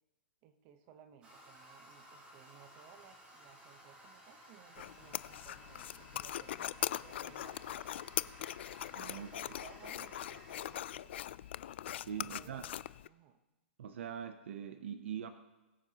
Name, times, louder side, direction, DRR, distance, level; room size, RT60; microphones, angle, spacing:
voice 1, 0.4-8.3 9.1-11.4 12.2-13.4, right 9 dB, 35° right, 9 dB, 0.9 m, -60 dB
Toilet flush, 1.2-11.0, right 1 dB, 20° right, 2.0 m, -57 dB
sound 1, 4.8-13.1, left 12 dB, 65° left, 0.3 m, -41 dB
voice 2, 8.9-9.3 12.1-12.6 13.8-15.3, right 8 dB, 75° right, 9 dB, 0.7 m, -42 dB
21.5 x 9.1 x 2.9 m, 1.1 s
hypercardioid pair, 150°, 6 cm